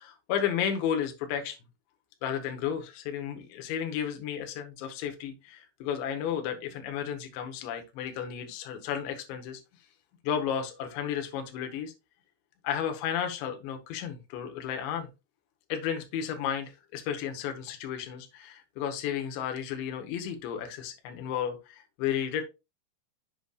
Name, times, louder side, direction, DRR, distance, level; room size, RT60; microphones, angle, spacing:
voice 1, 0.0-1.6 2.2-9.6 10.2-11.9 12.6-15.1 15.7-22.4, left 8 dB, 75° left, 5 dB, 3.2 m, -33 dB
7.9 x 6.4 x 2.4 m, 0.26 s
omnidirectional pair, 5.6 m